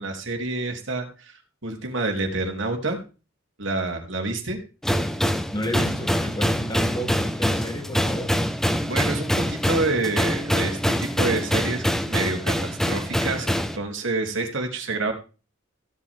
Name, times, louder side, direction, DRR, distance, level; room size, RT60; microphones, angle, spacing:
voice 1, 0.0-3.0 3.6-4.6 8.8-15.1, right 2 dB, 65° right, 3 dB, 3.1 m, -28 dB
sound 1, 4.8-13.8, equal, ahead, 1.1 m, -24 dB
voice 2, 5.5-8.3, equal, 20° left, 2 dB, 2.9 m, -32 dB
16.0 x 8.8 x 3.6 m, 0.33 s
head